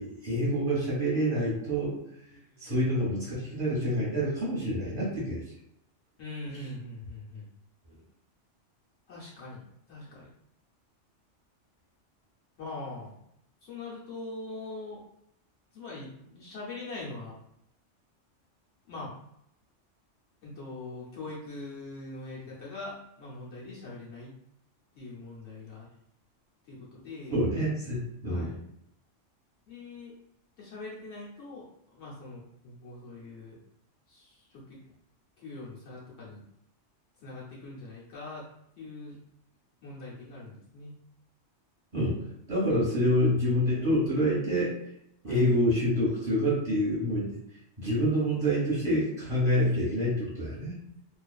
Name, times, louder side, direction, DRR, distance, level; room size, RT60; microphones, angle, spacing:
voice 1, 0.0-1.9 2.6-5.4 27.3-28.5 41.9-44.7 45.2-47.4 47.8-50.8, equal, 25° right, -8 dB, 1.2 m, -27 dB
voice 2, 2.3-2.8 6.2-7.5 9.1-9.6 9.9-10.3 12.6-13.2 13.6-15.0 15.7-17.4 18.9-19.1 20.4-24.3 25.0-25.9 26.7-27.4 28.2-28.6 29.7-30.1 30.6-33.6 34.1-34.8 35.4-36.4 37.2-38.5 38.8-39.2 39.8-40.9 45.3-45.5, left 2 dB, 65° left, -6 dB, 0.9 m, -42 dB
2.4 x 2.4 x 2.3 m, 0.76 s
omnidirectional pair, 1.3 m